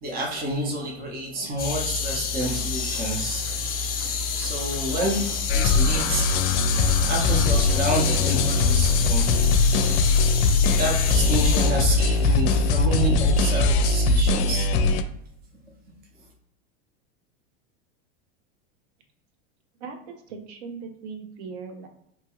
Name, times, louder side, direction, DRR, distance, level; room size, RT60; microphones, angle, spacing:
voice 1, 0.0-3.5 4.4-6.4 7.1-9.3 10.8-14.7, right 1 dB, 25° right, -2 dB, 0.8 m, -29 dB
sound 1, 1.6-11.7, left 5 dB, 25° left, 0.6 m, -29 dB
sound 2, 2.4-12.4, right 1 dB, 85° right, 1.0 m, -45 dB
sound 3, 5.5-15.0, left 3 dB, 75° left, 0.5 m, -21 dB
voice 2, 19.8-21.9, right 5 dB, 70° right, 4 dB, 0.8 m, -39 dB
2.9 x 2.3 x 3.0 m, 0.73 s
supercardioid pair, 120°, 34 cm